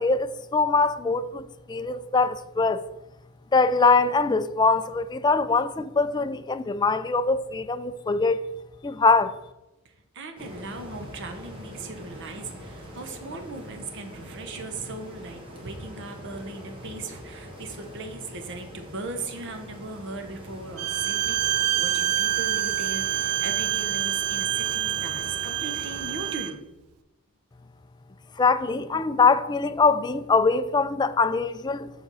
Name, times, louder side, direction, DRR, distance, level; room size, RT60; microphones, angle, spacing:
voice 1, 0.0-2.9 3.5-8.4 8.8-9.4 28.4-31.9, left 4 dB, 20° left, 0.3 m, -23 dB
voice 2, 10.1-26.7, right 3 dB, 55° right, 0.9 m, -38 dB
sound 1, 10.4-26.3, equal, 25° right, 1.5 m, -43 dB
Bowed string instrument, 20.8-26.5, right 13 dB, 90° right, 0.4 m, -27 dB
7.3 x 6.0 x 4.0 m
head